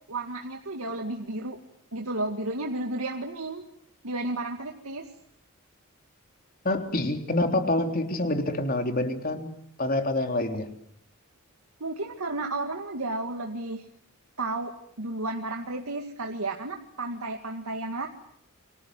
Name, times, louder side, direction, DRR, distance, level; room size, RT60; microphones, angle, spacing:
voice 1, 0.1-1.6 1.9-3.6 4.0-5.1 11.8-13.8 14.4-18.1, right 2 dB, 85° right, 3 dB, 2.2 m, -32 dB
voice 2, 6.7-9.5 9.8-10.7, left 1 dB, 40° left, 5 dB, 3.6 m, -26 dB
29.0 x 24.5 x 7.8 m, 0.66 s
head